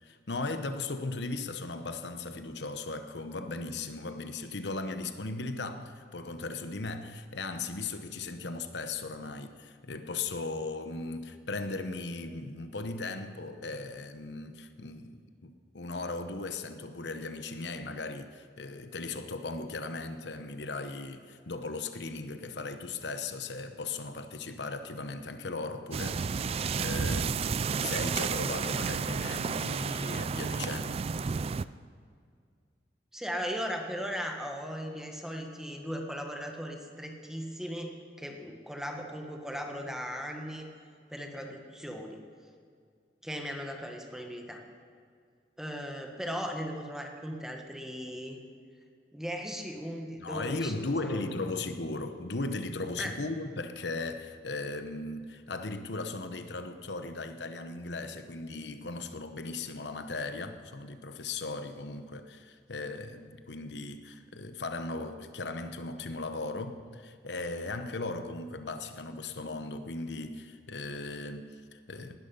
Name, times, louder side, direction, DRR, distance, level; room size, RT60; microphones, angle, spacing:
voice 1, 0.0-31.0 50.2-72.2, left 3 dB, 80° left, 1.0 m, -37 dB
sound 1, 25.9-31.6, right 5 dB, 35° right, 0.3 m, -31 dB
voice 2, 33.1-37.9 38.2-40.7 41.1-42.2 43.2-44.6 45.6-48.4 49.1-51.3 53.0-53.1, equal, 5° right, 1.4 m, -37 dB
19.0 x 12.0 x 5.6 m
head